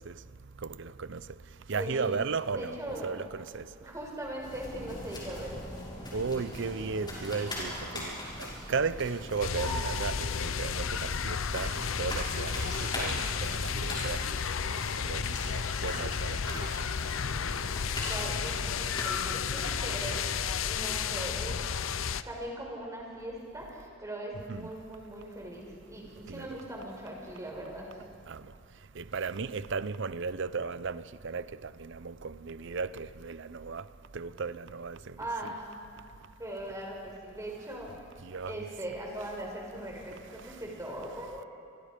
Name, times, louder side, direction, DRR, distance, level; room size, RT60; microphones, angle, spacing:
voice 1, 0.0-3.9 6.1-16.9 17.3-18.0 24.5-24.7 26.3-26.6 28.3-35.2 38.2-38.7 40.4-40.6, right 4 dB, 65° right, 0.7 m, -36 dB
voice 2, 1.7-2.1 2.5-3.2 3.8-5.5 13.0-13.3 18.0-20.3 20.6-21.5 22.3-27.9 35.2-35.6 36.4-37.9 38.4-41.5, right 1 dB, 15° right, 5.5 m, -40 dB
sound 1, 4.4-20.3, left 1 dB, 25° left, 6.7 m, -41 dB
sound 2, 9.4-22.2, left 6 dB, 80° left, 0.7 m, -32 dB
29.5 x 24.0 x 5.2 m
head